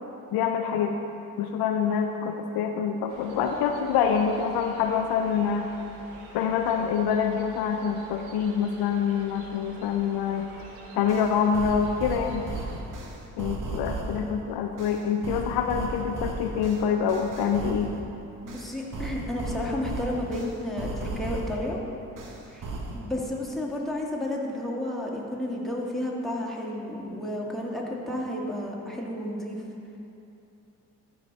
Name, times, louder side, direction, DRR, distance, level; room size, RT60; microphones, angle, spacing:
voice 1, 0.3-1.0 1.4-5.7 6.3-10.5 10.9-12.5 13.4-17.9, left 7 dB, 70° left, 5 dB, 0.6 m, -26 dB
sound 1, 3.1-12.8, right 2 dB, 85° right, 1.0 m, -47 dB
sound 2, 10.6-10.7 11.1-14.3 14.8-18.0 18.5-21.7 22.2-23.0, right 2 dB, 50° right, 1.2 m, -35 dB
voice 2, 18.4-21.8 22.5-29.6, left 1 dB, ahead, -4 dB, 2.1 m, -32 dB
13.0 x 4.9 x 4.0 m, 2.8 s
hypercardioid pair, 45°, 39 cm